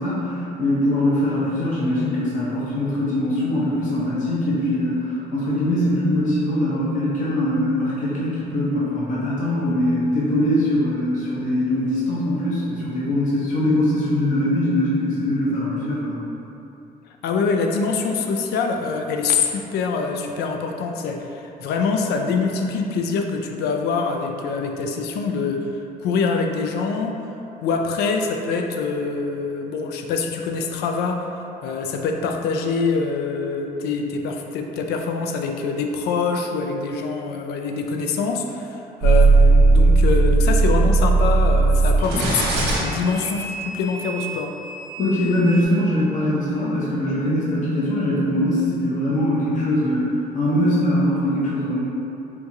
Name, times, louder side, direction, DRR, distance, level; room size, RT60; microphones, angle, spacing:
voice 1, 0.0-16.2 45.0-51.8, left 1 dB, 50° left, -7 dB, 0.7 m, -22 dB
voice 2, 17.2-25.7 26.0-27.1 27.6-31.2 31.6-42.5 42.8-44.6, left 4 dB, 75° left, 3 dB, 0.4 m, -24 dB
sound 1, 39.0-45.6, right 3 dB, 85° right, 0.8 m, -18 dB
4.4 x 2.4 x 2.7 m, 2.9 s
cardioid pair, 110°, 17 cm